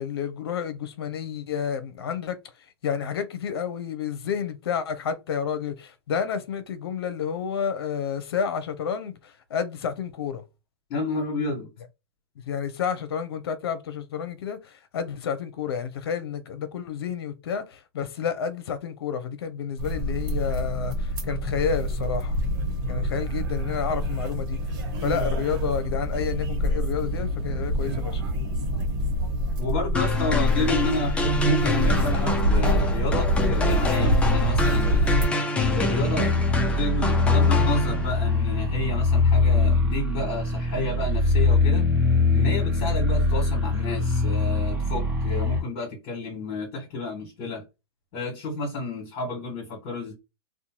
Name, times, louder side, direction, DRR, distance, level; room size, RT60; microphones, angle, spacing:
voice 1, 0.0-2.4 2.8-10.4 12.5-22.4 22.9-24.6 25.0-28.2, left 7 dB, 70° left, 0.7 m, -30 dB
voice 2, 10.9-11.7 29.6-35.3 35.7-41.8 42.3-47.6 48.1-50.1, left 2 dB, 45° left, 1.4 m, -30 dB
sound 1, 19.8-35.3, equal, 50° right, 1.1 m, -26 dB
sound 2, 29.9-38.3, left 1 dB, 10° left, 0.4 m, -26 dB
sound 3, 35.6-45.6, left 3 dB, 10° right, 1.1 m, -23 dB
2.6 x 2.2 x 2.9 m
hypercardioid pair, 130°, 13 cm